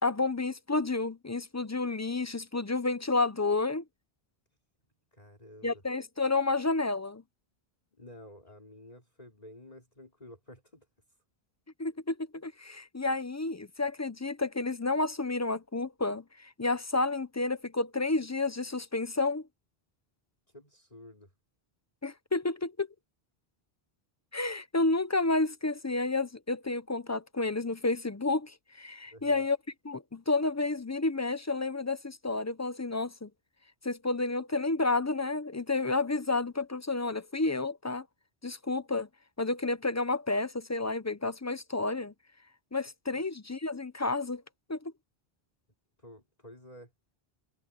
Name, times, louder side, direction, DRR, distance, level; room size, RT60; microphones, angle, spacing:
voice 1, 0.0-3.8 5.6-7.2 11.8-19.5 22.0-22.9 24.3-29.6 29.8-33.3 33.8-38.0 38.4-39.1 39.4-42.1 42.7-44.4 44.7-44.9, left 3 dB, 20° left, 0.5 m, -30 dB
voice 2, 5.1-5.8 8.0-10.9 20.5-21.3 29.1-29.4 43.1-43.3 46.0-46.9, left 1 dB, 40° left, 4.6 m, -51 dB
omnidirectional pair, 1.1 m